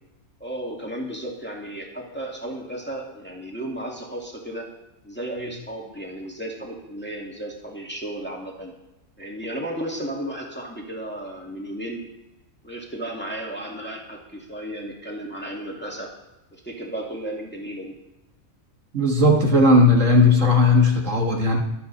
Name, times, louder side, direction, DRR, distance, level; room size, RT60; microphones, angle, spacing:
voice 1, 0.4-4.6 5.0-8.7 9.2-12.0 12.6-16.1 16.5-17.9, right 1 dB, 5° left, -2 dB, 2.4 m, -34 dB
voice 2, 18.9-21.6, left 2 dB, 60° right, 1 dB, 1.9 m, -16 dB
23.5 x 8.5 x 4.2 m, 0.96 s
omnidirectional pair, 1.5 m